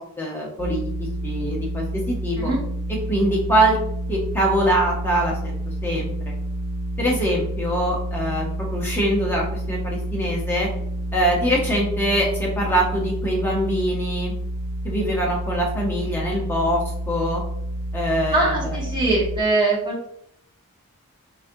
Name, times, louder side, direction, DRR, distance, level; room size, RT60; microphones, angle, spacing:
voice 1, 0.0-2.5 3.1-3.8 4.1-5.6 5.8-6.1 7.0-10.7 11.1-14.3 14.8-16.8 17.1-17.4 17.9-18.8, right 1 dB, 10° left, -3 dB, 0.7 m, -23 dB
sound 1, 0.6-19.4, right 1 dB, 75° right, 0.4 m, -29 dB
voice 2, 18.3-20.1, right 2 dB, 20° right, -4 dB, 0.8 m, -22 dB
3.9 x 2.7 x 2.5 m, 0.73 s
head